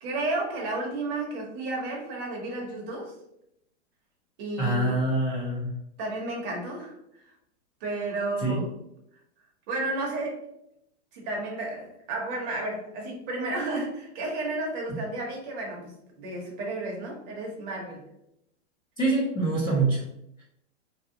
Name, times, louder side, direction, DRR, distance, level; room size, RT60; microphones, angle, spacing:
voice 1, 0.0-3.1 4.4-5.2 6.0-7.2 7.8-8.7 9.7-10.4 11.1-18.1, right 2 dB, 30° right, -1 dB, 0.8 m, -32 dB
voice 2, 4.6-5.7 8.4-8.6 19.0-20.0, right 2 dB, 10° left, -8 dB, 0.4 m, -25 dB
2.8 x 2.8 x 2.6 m, 0.78 s
hypercardioid pair, 150°, 36 cm